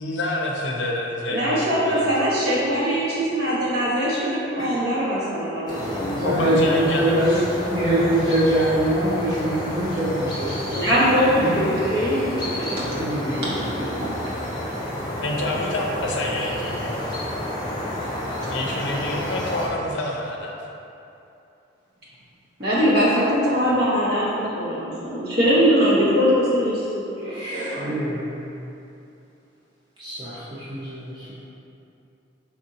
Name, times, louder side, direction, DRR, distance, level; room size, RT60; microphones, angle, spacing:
voice 1, 0.0-2.0 2.3-2.4 6.2-7.5 15.2-17.0 18.5-20.6, left 1 dB, 65° left, -1 dB, 0.5 m, -28 dB
voice 2, 1.3-6.6 10.7-14.1 22.6-28.0, equal, 50° right, -8 dB, 1.0 m, -22 dB
sound 1, 5.7-19.7, left 1 dB, 20° left, 0.6 m, -30 dB
voice 3, 6.0-7.4 7.7-10.9 11.4-11.5 12.8-13.5 27.2-28.6 30.0-31.4, right 1 dB, 20° right, -10 dB, 0.5 m, -24 dB
4.9 x 3.4 x 2.7 m, 2.7 s
head